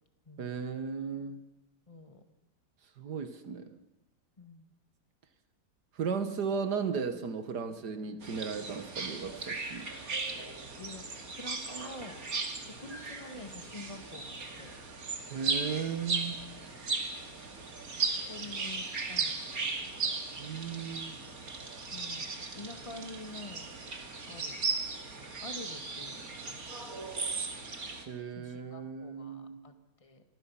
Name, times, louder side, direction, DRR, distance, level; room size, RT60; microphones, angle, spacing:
voice 1, 0.4-1.4 3.0-3.7 6.0-9.9 15.3-16.4 20.4-21.2 28.1-29.6, right 6 dB, 70° right, 10 dB, 1.9 m, -35 dB
voice 2, 1.9-2.2 4.4-4.7 10.8-12.2 12.6-14.7 16.2-16.3 18.0-20.3 21.9-23.8 24.2-24.6 25.1-26.6 28.3-29.7 30.0-30.2, left 2 dB, 20° left, 7 dB, 1.7 m, -48 dB
sound 1, 8.2-28.0, right 4 dB, 55° right, 2.7 m, -37 dB
26.5 x 20.0 x 5.7 m, 0.98 s
omnidirectional pair, 1.9 m